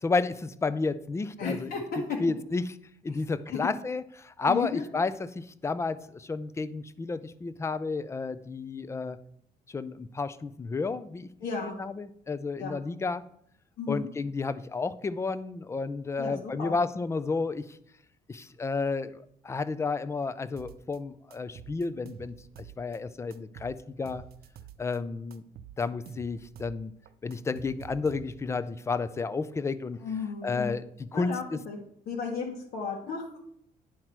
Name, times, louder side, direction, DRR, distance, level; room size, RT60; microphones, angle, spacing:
voice 1, 0.0-1.7 2.2-2.6 3.0-9.2 9.7-11.3 11.6-13.2 13.9-17.6 18.3-24.2 24.8-25.4 25.8-26.9 27.2-30.0 30.4-31.6, left 4 dB, 15° left, 15 dB, 0.4 m, -31 dB
voice 2, 1.4-2.0 3.1-3.2 3.5-3.8 4.5-4.8 11.4-11.8 12.6-12.8 13.8-14.1 16.2-16.8 30.0-30.8 31.1-31.8 32.1-33.4, left 5 dB, 70° left, -1 dB, 1.6 m, -34 dB
sound 1, 20.6-21.0 21.3-23.0 23.3-25.0 25.3-26.8 27.1-28.6, right 9 dB, 65° right, 0.6 m, -48 dB
10.0 x 5.8 x 4.6 m, 0.69 s
cardioid pair, 170°, 17 cm